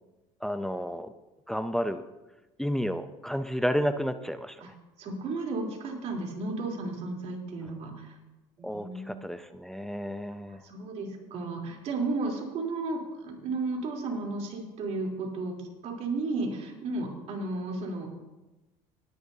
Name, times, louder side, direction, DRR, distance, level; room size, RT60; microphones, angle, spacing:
voice 1, 0.4-1.1 1.5-2.0 2.6-4.7 8.6-10.6, equal, 5° left, 10 dB, 0.6 m, -31 dB
voice 2, 5.0-8.2 8.6-9.2 10.5-18.1, right 3 dB, 50° right, 0 dB, 3.5 m, -33 dB
19.0 x 11.0 x 2.8 m, 1.1 s
supercardioid pair, 110°, 14 cm